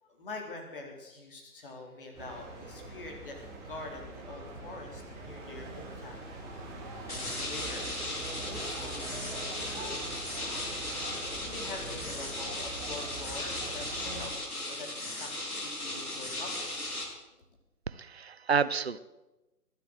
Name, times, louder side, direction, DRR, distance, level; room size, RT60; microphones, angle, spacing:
voice 1, 0.0-3.4 3.6-6.2 7.1-7.8 8.5-10.0 11.2-14.3 14.7-15.3 15.6-16.5, left 3 dB, 35° left, 1 dB, 3.8 m, -45 dB
sound 1, 2.1-14.3, right 2 dB, 10° right, 2.6 m, -43 dB
sound 2, 7.1-17.0, left 1 dB, 65° left, 6.6 m, -37 dB
voice 2, 17.9-19.0, right 6 dB, 45° right, 17 dB, 0.6 m, -29 dB
22.0 x 8.4 x 7.9 m, 1.1 s
figure-of-eight pair, 145°, 46 cm